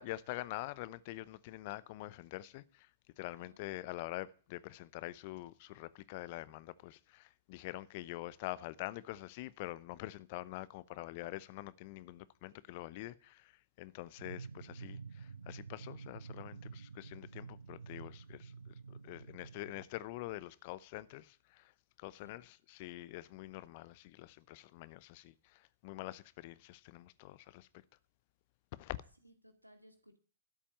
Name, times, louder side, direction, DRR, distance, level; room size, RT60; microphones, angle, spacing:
voice 1, 0.0-2.9 3.2-21.7 22.0-27.7 28.7-29.0, left 17 dB, 40° left, 0.8 m, -46 dB
sound 1, 14.2-19.9, right 5 dB, 70° right, 0.6 m, -49 dB
voice 2, 29.2-30.2, equal, 90° right, 2.2 m, -61 dB
13.0 x 7.3 x 8.6 m
figure-of-eight pair, 105°, 0 cm